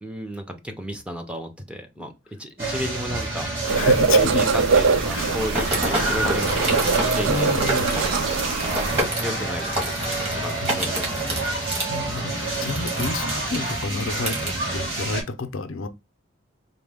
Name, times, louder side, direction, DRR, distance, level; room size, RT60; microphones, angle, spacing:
voice 1, 0.0-2.1 2.4-3.5 4.1-8.4 9.2-11.4, equal, 5° right, 0.6 m, -33 dB
sound 1, 2.6-15.2, right 2 dB, 50° right, 2.2 m, -29 dB
sound 2, 3.7-9.0, right 4 dB, 75° right, 0.4 m, -22 dB
voice 2, 3.8-4.4 5.1-5.4 7.3-8.0 10.1-10.8 11.6-15.9, left 4 dB, 80° left, 0.5 m, -31 dB
sound 3, 5.5-14.5, right 1 dB, 30° right, 1.6 m, -29 dB
4.0 x 2.2 x 3.4 m
head